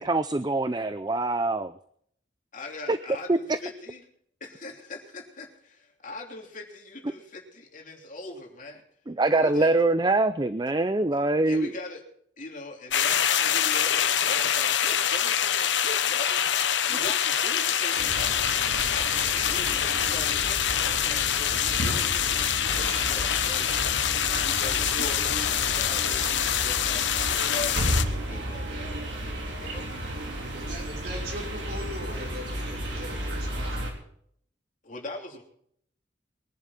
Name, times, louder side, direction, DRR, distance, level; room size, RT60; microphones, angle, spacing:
voice 1, 0.0-1.7 2.9-3.0 3.3-3.4 9.1-11.7 16.9-17.0, right 2 dB, 20° right, 12 dB, 0.5 m, -24 dB
voice 2, 2.5-4.0 4.4-8.8 9.3-9.8 11.5-12.0 12.4-18.6 18.9-23.7 23.9-28.9 29.5-29.9 34.8-35.4, left 2 dB, 45° left, 1 dB, 3.2 m, -41 dB
sound 1, 12.9-28.0, left 9 dB, 75° left, 1.1 m, -25 dB
sound 2, 18.0-33.9, right 1 dB, 70° right, 4.1 m, -33 dB
voice 3, 30.5-33.9, equal, 55° right, -1 dB, 5.3 m, -40 dB
23.0 x 11.0 x 4.2 m, 0.67 s
head